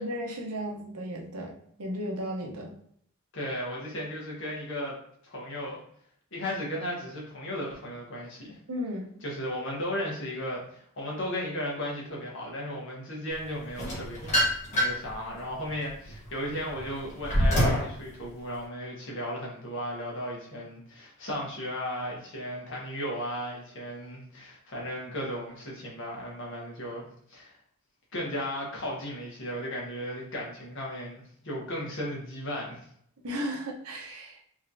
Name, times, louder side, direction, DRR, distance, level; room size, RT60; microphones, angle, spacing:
voice 1, 0.0-2.7 8.7-9.1 33.2-34.4, equal, 85° right, 0 dB, 1.0 m, -35 dB
voice 2, 3.3-5.0 5.2-5.8 6.3-8.6 9.2-14.4 14.7-27.5 28.1-32.8, equal, 55° left, -3 dB, 1.3 m, -35 dB
sound 1, 13.8-15.1 15.7-17.9, equal, 35° left, 1.4 m, -26 dB
3.6 x 3.2 x 2.7 m, 0.66 s
head